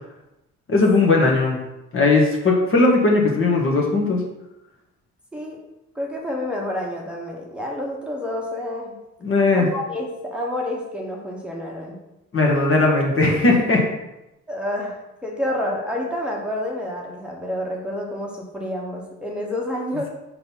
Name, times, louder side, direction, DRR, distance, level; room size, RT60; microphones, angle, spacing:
voice 1, 0.7-1.6 1.9-4.2 9.2-9.7 12.3-13.9, left 3 dB, 45° left, -1 dB, 1.7 m, -18 dB
voice 2, 5.9-9.0 9.5-12.0 14.5-20.1, left 1 dB, 5° right, -3 dB, 1.1 m, -29 dB
4.6 x 3.9 x 5.4 m, 0.93 s
cardioid pair, 90°, 30 cm